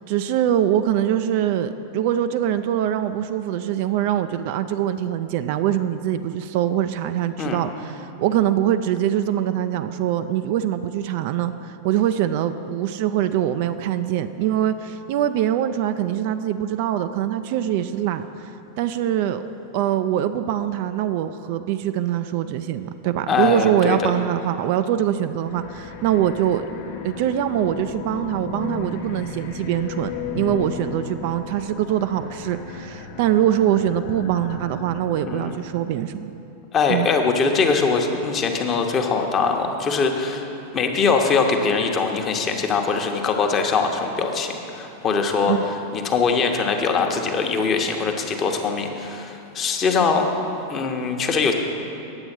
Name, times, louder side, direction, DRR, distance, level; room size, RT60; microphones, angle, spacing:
voice 1, 0.1-18.3 18.8-19.4 19.7-26.6 27.0-36.3 36.9-37.1 45.4-45.7, right 11 dB, 50° right, 10 dB, 0.3 m, -23 dB
voice 2, 23.3-24.1 35.2-35.5 36.7-40.5 40.7-45.5 45.9-50.3 50.7-51.5, left 5 dB, 30° left, 3 dB, 1.0 m, -22 dB
sound 1, 25.4-36.0, left 6 dB, 50° left, 0.8 m, -35 dB
9.7 x 7.8 x 6.0 m, 2.9 s
figure-of-eight pair, 90°, 0 cm